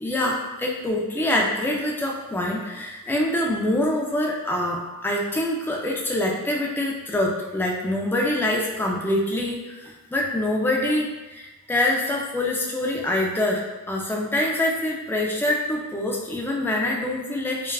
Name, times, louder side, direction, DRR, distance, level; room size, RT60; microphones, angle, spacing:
voice 1, 0.0-17.7, left 1 dB, 10° left, -2 dB, 0.4 m, -25 dB
3.3 x 2.3 x 2.3 m, 1.1 s
head